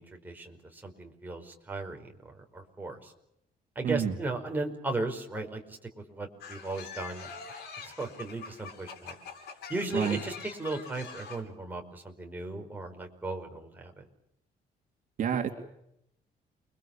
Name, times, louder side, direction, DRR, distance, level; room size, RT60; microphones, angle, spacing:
voice 1, 0.0-3.1 3.7-9.1 9.7-14.1, right 2 dB, 10° right, 1 dB, 5.0 m, -37 dB
voice 2, 3.8-4.1 9.9-10.2 15.2-15.5, right 8 dB, 55° right, 3 dB, 3.0 m, -28 dB
sound 1, 6.4-11.4, left 5 dB, 90° left, 7.5 m, -44 dB
29.5 x 23.0 x 7.3 m, 0.77 s
cardioid pair, 150°, 17 cm